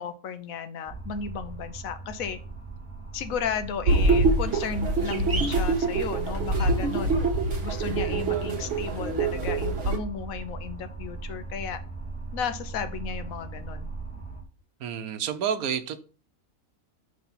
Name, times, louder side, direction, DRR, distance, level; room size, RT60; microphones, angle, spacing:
voice 1, 0.0-2.4 3.1-7.2 7.6-11.8 12.3-13.9, left 7 dB, 75° left, 1.1 m, -34 dB
sound 1, 0.9-14.4, right 3 dB, 5° left, 1.2 m, -38 dB
sound 2, 3.9-10.0, right 3 dB, 55° right, 1.5 m, -25 dB
voice 2, 14.8-16.0, right 8 dB, 85° right, 1.1 m, -29 dB
6.0 x 3.3 x 5.6 m
omnidirectional pair, 1.5 m